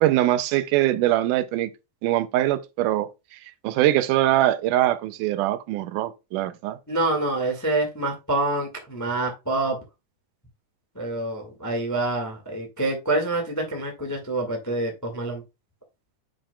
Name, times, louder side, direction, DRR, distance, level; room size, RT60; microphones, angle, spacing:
voice 1, 0.0-1.7 2.0-3.1 3.6-6.8, right 14 dB, 80° right, 2.1 m, -22 dB
voice 2, 6.9-9.8 10.9-15.4, right 2 dB, 15° left, 0.6 m, -26 dB
8.6 x 6.0 x 2.3 m
omnidirectional pair, 3.7 m